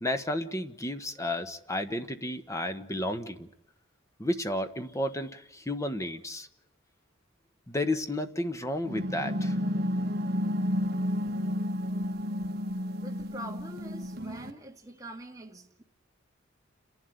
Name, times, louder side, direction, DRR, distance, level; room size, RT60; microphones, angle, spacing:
voice 1, 0.0-3.5 4.2-6.5 7.7-9.5, left 1 dB, 15° left, 1.3 m, -32 dB
sound 1, 8.9-14.5, equal, 50° right, 1.7 m, -31 dB
voice 2, 13.0-15.8, right 1 dB, 15° right, 2.2 m, -44 dB
30.0 x 11.5 x 9.5 m
head